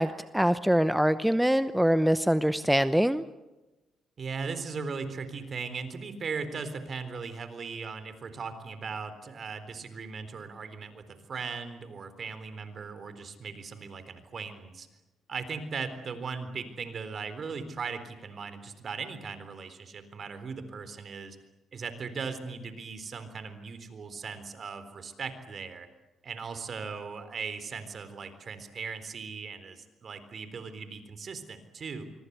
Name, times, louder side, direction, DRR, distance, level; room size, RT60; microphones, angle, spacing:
voice 1, 0.0-3.3, equal, 5° right, 12 dB, 0.8 m, -24 dB
voice 2, 4.2-14.9 15.3-21.4 21.7-25.9 26.2-32.0, right 5 dB, 50° right, 11 dB, 3.9 m, -38 dB
25.0 x 24.5 x 8.2 m, 1.1 s
cardioid pair, 90°, 0 cm